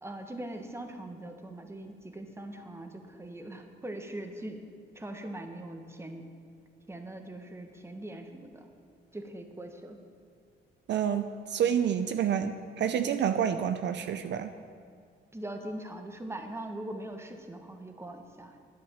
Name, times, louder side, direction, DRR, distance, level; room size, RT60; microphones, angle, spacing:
voice 1, 0.0-4.6 4.9-6.2 6.9-8.7 9.1-10.0 15.3-18.6, right 1 dB, 15° right, 5 dB, 1.4 m, -41 dB
voice 2, 10.9-14.5, right 8 dB, 65° right, 9 dB, 0.6 m, -28 dB
11.5 x 9.3 x 7.3 m, 2.2 s
cardioid pair, 90°, 20 cm